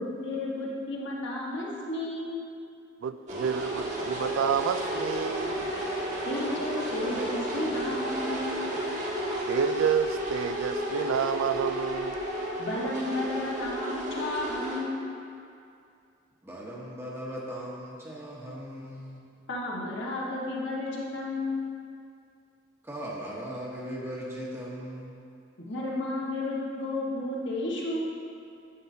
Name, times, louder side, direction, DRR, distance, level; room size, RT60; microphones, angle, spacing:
voice 1, 0.0-2.4 6.3-8.8 12.6-15.2 19.5-21.7 25.6-28.0, left 2 dB, 65° left, -4 dB, 1.4 m, -32 dB
voice 2, 3.0-5.7 9.5-12.3, right 7 dB, 75° right, 11 dB, 0.3 m, -29 dB
sound 1, 3.3-14.8, right 1 dB, 40° right, 1.3 m, -32 dB
voice 3, 16.4-19.2 22.8-25.1, equal, 15° right, -5 dB, 1.0 m, -38 dB
10.0 x 8.1 x 2.7 m, 2.5 s
head